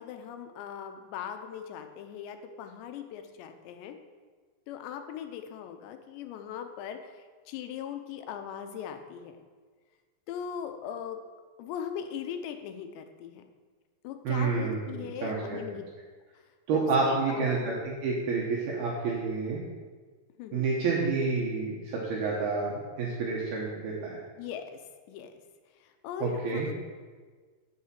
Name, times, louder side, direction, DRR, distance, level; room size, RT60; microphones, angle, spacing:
voice 1, 0.0-4.0 4.7-9.4 10.3-11.2 11.6-13.4 14.0-15.8 16.7-17.7 20.4-20.7 24.4-24.8 25.1-25.4 25.8-26.8, left 8 dB, 90° left, 7 dB, 3.1 m, -39 dB
voice 2, 14.2-15.6 16.7-19.6 20.5-24.2 26.2-26.7, right 4 dB, 70° right, -4 dB, 3.0 m, -29 dB
8.7 x 7.3 x 7.5 m, 1.5 s
omnidirectional pair, 4.9 m